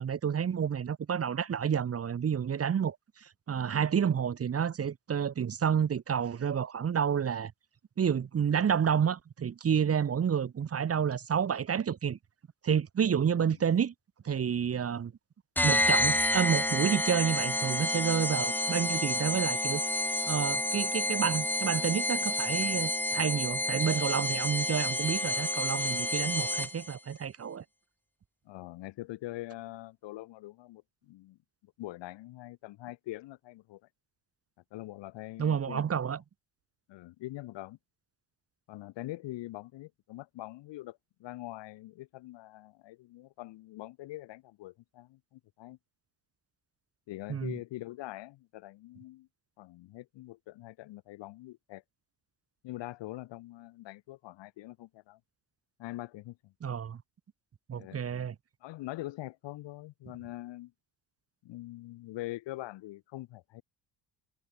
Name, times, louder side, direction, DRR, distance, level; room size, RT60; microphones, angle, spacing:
voice 1, 0.0-7.5 8.0-12.2 12.6-13.9 14.2-15.1 15.6-19.8 20.3-27.6 35.4-36.2 47.3-47.5 56.6-57.0 57.7-58.4, right 7 dB, 30° right, 2.2 m, -29 dB
sound 1, 15.6-26.9, left 1 dB, 5° left, 1.1 m, -29 dB
voice 2, 28.5-33.8 34.7-35.9 36.9-37.8 38.7-45.8 47.1-49.3 49.6-51.8 52.6-55.2 55.8-56.5 57.8-58.0 58.6-60.7 61.4-63.6, left 17 dB, 75° left, 5.4 m, -43 dB
cardioid pair, 140°, 44 cm